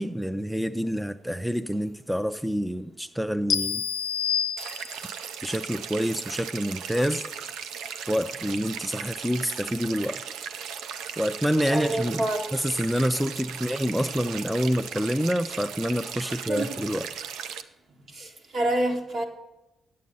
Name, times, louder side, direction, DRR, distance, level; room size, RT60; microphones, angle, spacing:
voice 1, 0.0-3.8 5.4-7.2 8.1-10.2 11.2-12.2 12.5-17.1, equal, 5° right, 9 dB, 0.5 m, -27 dB
sound 1, 3.5-5.2, left 8 dB, 80° left, 0.5 m, -28 dB
sound 2, 4.6-17.6, right 8 dB, 85° right, 0.4 m, -37 dB
voice 2, 11.7-12.5 16.2-16.8 18.1-19.2, right 1 dB, 65° right, 2 dB, 1.6 m, -28 dB
9.3 x 7.7 x 5.4 m, 0.96 s
supercardioid pair, 60°, 0 cm